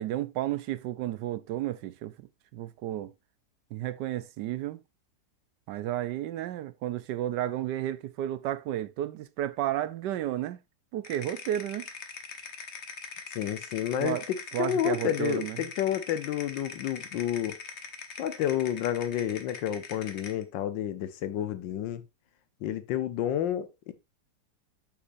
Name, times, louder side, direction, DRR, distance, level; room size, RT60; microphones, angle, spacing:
voice 1, 0.0-2.3 2.5-3.1 3.7-4.8 5.7-10.6 10.9-11.9 14.0-14.2 14.5-15.6, right 13 dB, 75° right, 1.2 m, -32 dB
sound 1, 11.0-20.4, left 5 dB, 45° left, 1.2 m, -42 dB
voice 2, 13.3-17.6 18.2-22.0 22.6-23.9, left 11 dB, 80° left, 1.5 m, -30 dB
8.6 x 7.3 x 2.6 m
omnidirectional pair, 2.0 m